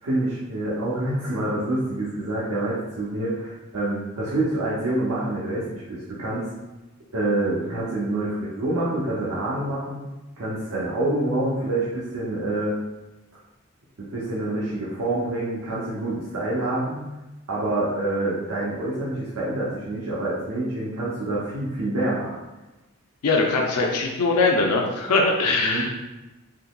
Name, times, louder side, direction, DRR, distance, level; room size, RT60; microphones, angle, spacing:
voice 1, 0.0-6.5 7.1-10.0 10.4-12.7 14.0-17.1 17.5-22.4 25.6-25.9, right 2 dB, 70° right, -7 dB, 0.7 m, -27 dB
voice 2, 23.2-25.9, left 3 dB, 90° left, 0 dB, 0.5 m, -21 dB
3.8 x 2.9 x 2.3 m, 1.1 s
head